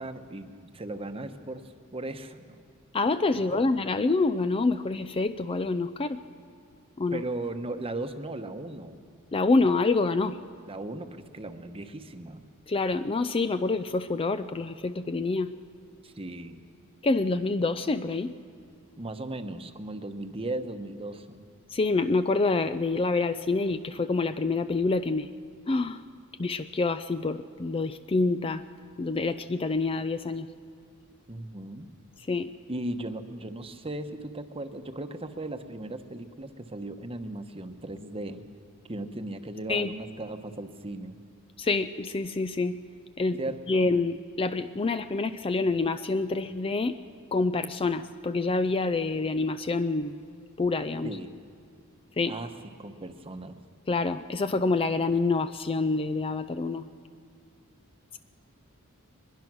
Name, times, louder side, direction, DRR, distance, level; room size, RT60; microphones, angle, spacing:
voice 1, 0.0-1.6 1.9-2.6 3.3-3.6 7.1-9.0 10.7-12.4 16.0-16.6 19.0-21.4 31.3-31.9 32.7-38.4 38.9-41.2 43.4-43.9 51.0-51.3 52.3-52.5 52.8-53.6, right 2 dB, 25° right, 7 dB, 1.0 m, -37 dB
voice 2, 2.9-6.2 7.0-7.2 9.3-10.4 12.7-15.5 17.0-18.3 21.7-25.3 25.7-26.0 26.4-28.6 29.0-30.5 32.3-32.5 39.7-39.9 41.6-42.8 43.2-43.4 43.7-47.0 47.3-50.3 50.6-51.1 52.2-52.4 53.9-56.9, left 3 dB, 25° left, 11 dB, 0.4 m, -27 dB
22.0 x 21.5 x 6.2 m, 2.3 s
head